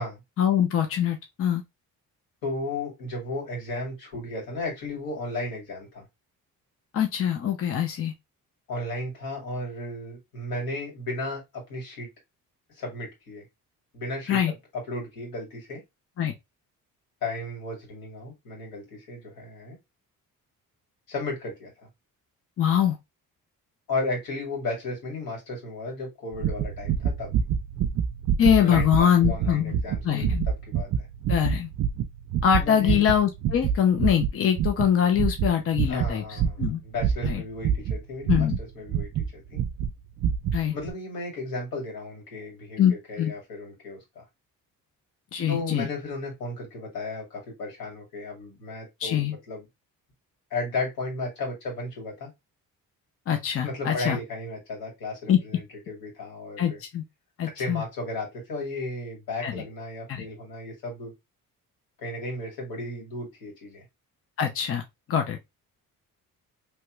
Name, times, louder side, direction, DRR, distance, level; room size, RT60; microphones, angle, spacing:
voice 1, 0.4-1.6 6.9-8.1 14.3-14.5 16.2-16.3 22.6-23.0 28.4-29.8 30.0-30.5 31.3-31.7 32.4-36.8 37.2-37.4 38.3-38.6 40.5-40.7 42.8-43.3 45.3-45.9 49.0-49.3 53.3-54.2 55.3-55.4 56.6-57.0 57.4-57.8 59.4-59.6 60.1-60.2 64.4-64.8 65.1-65.4, left 9 dB, 40° left, 0.6 m, -23 dB
voice 2, 2.4-6.1 8.7-12.1 12.8-13.4 13.9-15.8 17.2-19.8 21.1-21.9 23.9-27.3 28.6-31.1 32.6-33.0 35.9-38.5 38.7-39.6 40.7-44.2 45.5-49.7 50.5-52.3 53.6-56.8 57.5-61.1 62.0-63.8, left 2 dB, 85° left, 2.1 m, -34 dB
sound 1, 26.3-39.3 39.5-39.9 40.2-40.6 40.8-40.9, right 8 dB, 55° right, 0.4 m, -27 dB
3.0 x 2.3 x 3.0 m
cardioid pair, 110°, 35 cm